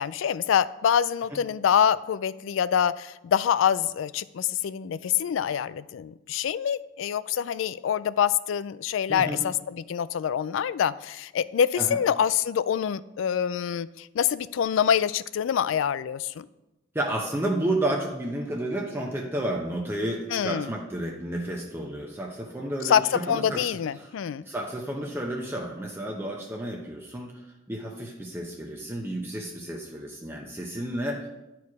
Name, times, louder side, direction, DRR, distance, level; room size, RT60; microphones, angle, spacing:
voice 1, 0.0-9.5 9.9-16.5 20.3-20.7 22.8-24.4, left 8 dB, 90° left, 17 dB, 0.3 m, -25 dB
voice 2, 9.1-9.4 11.8-12.0 16.9-23.7 24.0-24.1 24.5-27.3 27.7-31.3, right 1 dB, 10° right, -1 dB, 0.8 m, -31 dB
10.0 x 4.7 x 4.8 m, 0.97 s
head